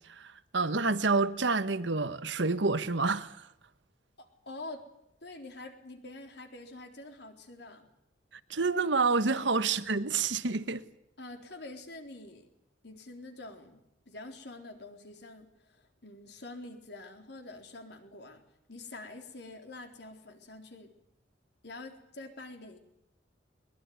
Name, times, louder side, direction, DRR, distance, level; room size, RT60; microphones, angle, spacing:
voice 1, 0.2-3.4 8.5-10.8, right 4 dB, 70° right, 1.3 m, -28 dB
voice 2, 4.2-4.9 5.2-7.9 9.4-9.5 11.2-12.5 12.8-18.4 18.7-20.9 21.6-22.8, left 2 dB, 60° left, 3.9 m, -46 dB
22.0 x 21.5 x 9.7 m
head